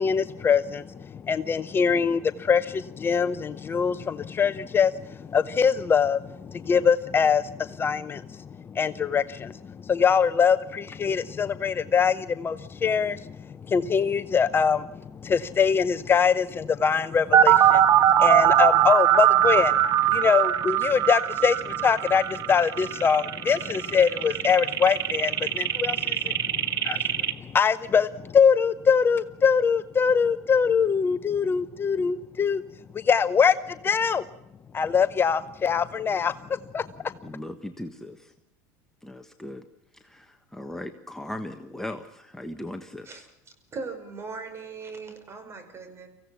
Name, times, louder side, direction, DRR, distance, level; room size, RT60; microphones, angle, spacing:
voice 1, 0.0-13.4 13.7-19.8 20.1-32.6 32.9-34.3 34.7-36.9, left 6 dB, 25° left, 13 dB, 0.7 m, -23 dB
sound 1, 17.3-27.3, right 11 dB, 50° right, 1.5 m, -21 dB
voice 2, 37.2-38.3 39.0-39.6 39.9-43.3, left 1 dB, 5° left, 6 dB, 1.4 m, -38 dB
voice 3, 43.7-46.1, right 4 dB, 30° right, 7 dB, 5.4 m, -39 dB
24.5 x 16.0 x 7.1 m, 0.85 s
hypercardioid pair, 100°, 8 cm